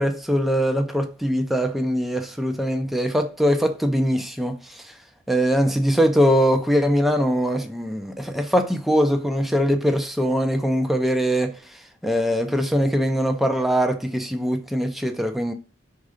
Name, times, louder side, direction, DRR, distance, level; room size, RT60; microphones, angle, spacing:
voice 1, 0.0-4.9 5.3-15.5, equal, ahead, 0.5 m, -22 dB
5.3 x 3.8 x 4.9 m
head